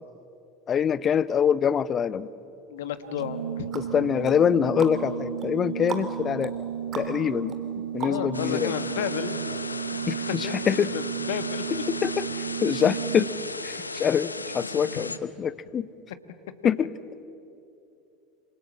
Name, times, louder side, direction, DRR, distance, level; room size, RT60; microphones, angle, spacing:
voice 1, 0.7-2.3 3.7-6.5 6.9-7.6 7.9-8.7 10.1-10.9 11.7-13.3 13.6-15.9 16.6-16.9, left 8 dB, 35° left, 18 dB, 0.8 m, -25 dB
voice 2, 2.7-3.7 8.0-9.4 10.4-11.6, left 9 dB, 65° left, 11 dB, 1.6 m, -32 dB
Organ, 3.0-13.7, right 9 dB, 70° right, 0.8 m, -34 dB
sound 1, 3.2-8.6 9.0-9.1, right 5 dB, 35° right, 3.3 m, -40 dB
sound 2, 8.3-15.2, left 3 dB, 90° left, 0.8 m, -36 dB
28.0 x 26.5 x 7.6 m, 2.8 s
figure-of-eight pair, 75°, 0 cm